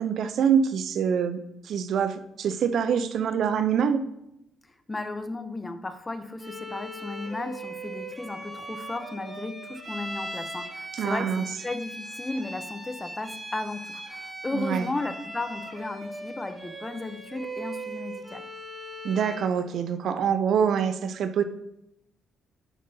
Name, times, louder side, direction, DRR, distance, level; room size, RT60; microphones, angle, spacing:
voice 1, 0.0-1.4 1.6-4.0 11.0-11.4 14.5-14.9 19.0-21.4, right 7 dB, 65° right, 10 dB, 0.5 m, -25 dB
voice 2, 4.9-18.5, left 2 dB, 20° left, 9 dB, 0.7 m, -35 dB
Bowed string instrument, 6.4-19.6, right 1 dB, 10° right, 2.4 m, -39 dB
10.5 x 5.3 x 2.8 m, 0.83 s
cardioid pair, 90°, 0 cm